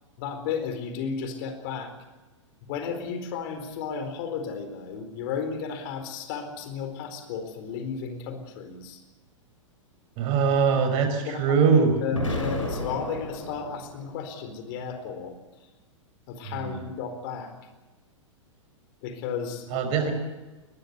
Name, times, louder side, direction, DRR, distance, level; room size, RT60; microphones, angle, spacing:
voice 1, 0.2-1.9 2.6-9.0 10.7-11.6 12.0-15.3 16.3-17.5 19.0-20.1, left 6 dB, 45° left, 8 dB, 4.4 m, -34 dB
voice 2, 10.2-11.9 16.6-16.8 19.7-20.1, right 6 dB, 35° right, 6 dB, 5.4 m, -22 dB
Explosion, 12.1-14.2, left 1 dB, 80° left, 6.2 m, -32 dB
22.0 x 20.0 x 7.0 m, 1.2 s
figure-of-eight pair, 100°, 16 cm